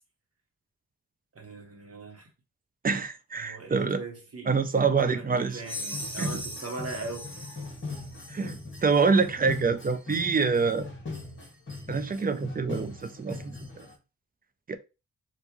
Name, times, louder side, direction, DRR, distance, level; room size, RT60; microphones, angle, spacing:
voice 1, 1.3-2.3 3.4-7.3, right 3 dB, 40° right, 1.2 m, -40 dB
voice 2, 2.8-4.0 4.5-5.6 6.2-6.3 8.3-10.9 11.9-13.5 14.7-14.8, right 5 dB, 25° right, 0.4 m, -26 dB
sound 1, 5.5-13.9, left 3 dB, 35° left, 1.7 m, -40 dB
sound 2, 5.6-8.6, left 1 dB, 15° left, 1.1 m, -39 dB
3.4 x 2.5 x 3.0 m
wide cardioid pair, 85°, 36 cm